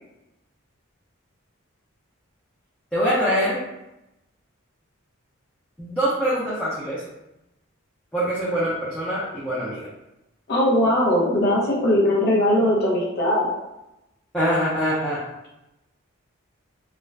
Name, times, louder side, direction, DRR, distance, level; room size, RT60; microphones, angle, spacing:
voice 1, 2.9-3.6 5.8-7.0 8.1-9.9 14.3-15.2, equal, 5° left, -10 dB, 0.5 m, -24 dB
voice 2, 10.5-13.5, left 1 dB, 50° left, -4 dB, 0.6 m, -20 dB
2.4 x 2.1 x 3.2 m, 0.92 s
head